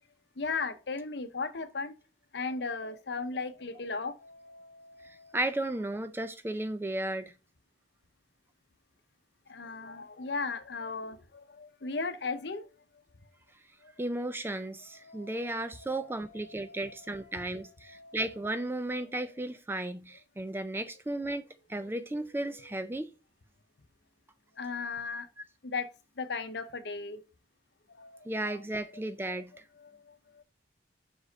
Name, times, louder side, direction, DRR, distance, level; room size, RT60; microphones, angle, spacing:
voice 1, 0.4-1.9 2.3-5.4 9.5-12.7 15.0-17.4 17.9-18.2 24.6-25.3 25.6-25.9 26.2-27.2 28.0-28.2 28.5-28.6 29.2-29.4, left 4 dB, 65° left, 0.8 m, -37 dB
voice 2, 5.3-7.3 14.0-23.1 28.3-29.5, right 1 dB, 10° right, 0.4 m, -34 dB
5.4 x 5.0 x 4.0 m
head